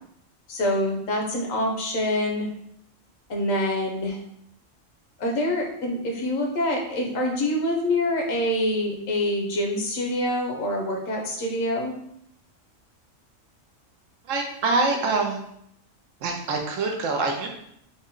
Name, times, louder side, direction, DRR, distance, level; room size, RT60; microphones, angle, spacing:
voice 1, 0.5-2.5 3.3-4.2 5.2-11.9, left 1 dB, 90° left, 1 dB, 1.2 m, -26 dB
voice 2, 14.2-15.4 16.2-17.5, right 3 dB, 80° right, 2 dB, 1.0 m, -25 dB
3.8 x 2.2 x 3.7 m, 0.73 s
omnidirectional pair, 1.3 m